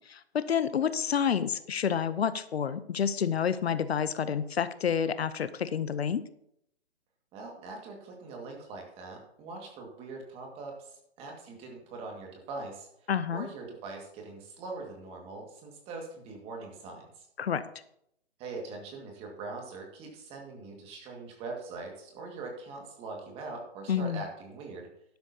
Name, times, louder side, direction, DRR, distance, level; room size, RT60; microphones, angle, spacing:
voice 1, 0.1-6.2 13.1-13.5 17.4-17.7 23.9-24.2, left 7 dB, 70° left, 14 dB, 0.7 m, -29 dB
voice 2, 7.3-17.3 18.4-24.9, right 3 dB, 15° right, 1 dB, 1.9 m, -42 dB
11.5 x 11.5 x 2.8 m, 0.74 s
hypercardioid pair, 145°, 33 cm